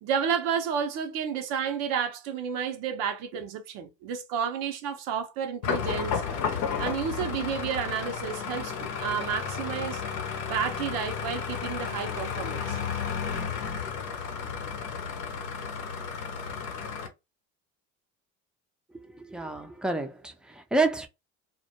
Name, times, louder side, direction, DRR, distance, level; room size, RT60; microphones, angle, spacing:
voice 1, 0.0-6.2 6.8-10.0 10.4-12.8, right 7 dB, 70° right, 0.6 m, -31 dB
sound 1, 5.6-17.1, left 6 dB, 75° left, 0.7 m, -33 dB
voice 2, 19.1-21.1, right 3 dB, ahead, 0.4 m, -29 dB
2.2 x 2.0 x 2.8 m
hypercardioid pair, 65°, 38 cm